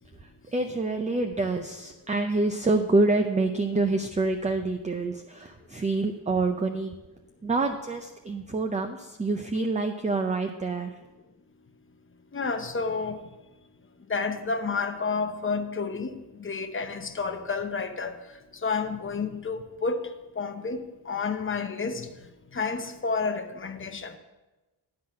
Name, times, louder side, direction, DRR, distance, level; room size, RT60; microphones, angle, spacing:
voice 1, 0.2-6.9 7.4-10.9, right 3 dB, 15° right, 5 dB, 0.5 m, -27 dB
voice 2, 12.3-13.2 14.1-18.2 18.6-20.1 20.4-22.1 22.5-24.2, left 4 dB, 30° left, 6 dB, 0.9 m, -30 dB
11.5 x 3.9 x 7.4 m, 1.1 s
wide cardioid pair, 110°, 41 cm